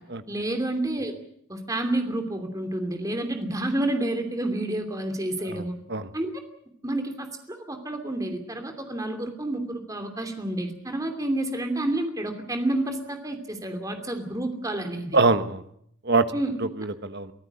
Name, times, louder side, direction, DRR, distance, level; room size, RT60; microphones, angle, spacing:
voice 1, 0.3-1.1 1.5-5.7 6.1-6.3 6.8-15.2 16.3-16.5, right 1 dB, 15° right, 6 dB, 2.8 m, -29 dB
voice 2, 5.5-6.1 15.1-15.6 16.0-16.3 16.6-17.3, right 3 dB, 50° right, 11 dB, 1.3 m, -24 dB
24.0 x 14.5 x 9.7 m, 0.71 s
head